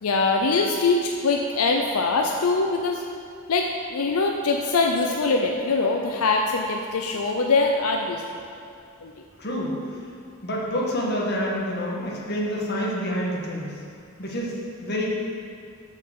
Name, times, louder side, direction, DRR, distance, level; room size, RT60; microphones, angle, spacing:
voice 1, 0.0-3.0 3.5-8.4 9.0-9.1, left 3 dB, 90° left, 2 dB, 0.6 m, -23 dB
voice 2, 9.4-9.7 10.4-13.7 14.2-14.6 14.8-15.1, equal, 50° left, -3 dB, 1.7 m, -27 dB
7.0 x 6.6 x 6.7 m, 2.4 s
head